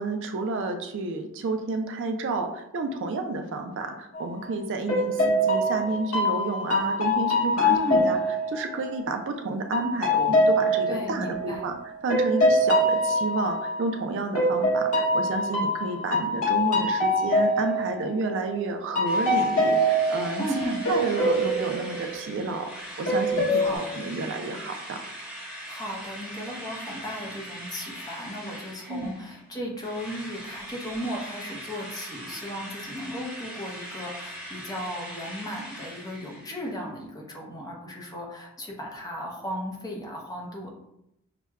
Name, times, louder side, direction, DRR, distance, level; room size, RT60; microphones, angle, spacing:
voice 1, 0.0-8.2 8.5-11.7 12.0-25.1 28.9-29.1, right 3 dB, 55° right, 6 dB, 0.4 m, -30 dB
sound 1, 4.1-4.4 4.9-9.2 9.7-13.9 14.3-18.6 18.9-22.7 23.1-23.8, equal, 80° left, 0.9 m, -24 dB
voice 2, 7.6-8.2 10.9-11.7 20.4-20.8 23.5-23.9 25.6-40.7, equal, 15° left, -1 dB, 0.7 m, -35 dB
Drill, 19.1-29.4 29.8-36.7, equal, 5° right, 1.1 m, -41 dB
5.8 x 2.1 x 2.3 m, 0.81 s
head